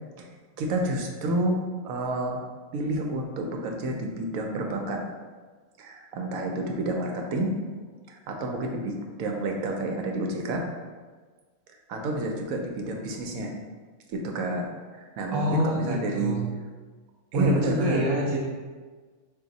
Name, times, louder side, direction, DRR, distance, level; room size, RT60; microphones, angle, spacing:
voice 1, 0.6-2.4 2.7-5.1 5.8-7.6 8.1-10.6 11.9-13.5 14.1-16.4 17.3-18.1, right 1 dB, 85° right, 2 dB, 1.0 m, -29 dB
voice 2, 15.3-16.4 17.3-18.4, right 1 dB, 25° right, -4 dB, 0.5 m, -26 dB
3.6 x 2.5 x 4.0 m, 1.4 s
omnidirectional pair, 1.4 m